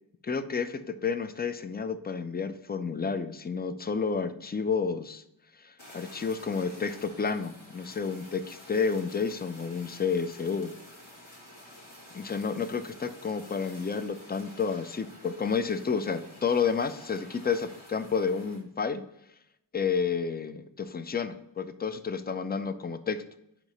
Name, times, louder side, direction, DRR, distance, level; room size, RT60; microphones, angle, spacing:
voice 1, 0.2-5.2 5.6-10.7 12.1-19.0 19.7-23.2, left 5 dB, 20° left, 11 dB, 0.4 m, -30 dB
Fire, 5.8-18.6, left 1 dB, 85° left, 1.8 m, -50 dB
4.9 x 4.5 x 5.3 m, 0.82 s
wide cardioid pair, 80°, 45 cm